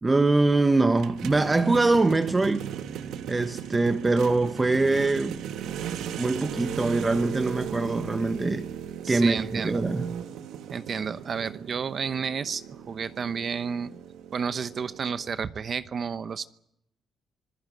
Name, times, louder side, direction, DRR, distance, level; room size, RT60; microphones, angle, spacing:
voice 1, 0.0-2.7 3.3-5.4 6.2-8.7 9.1-10.1, right 3 dB, 20° right, 1.1 m, -23 dB
sound 1, 1.0-15.3, right 9 dB, 80° right, 1.3 m, -37 dB
voice 2, 9.0-9.8 10.7-13.9 14.3-16.5, right 6 dB, 50° right, 0.8 m, -31 dB
26.0 x 16.5 x 9.1 m
cardioid pair, 90°, 0 cm